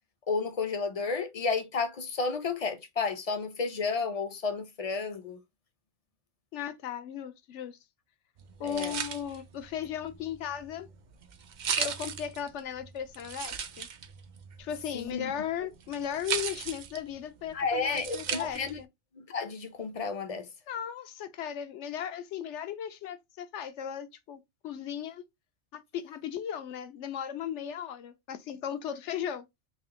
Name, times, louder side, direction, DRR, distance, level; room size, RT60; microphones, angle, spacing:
voice 1, 0.3-5.4 8.6-9.0 14.9-15.3 17.5-18.8 19.1-20.5, left 4 dB, 45° left, 0.5 m, -32 dB
voice 2, 6.5-7.8 8.6-10.9 11.8-13.9 14.6-18.9 20.7-25.2 25.7-29.5, left 9 dB, 75° left, 0.9 m, -36 dB
sound 1, 8.4-18.8, right 7 dB, 55° right, 0.5 m, -38 dB
3.4 x 2.8 x 3.6 m
omnidirectional pair, 1.2 m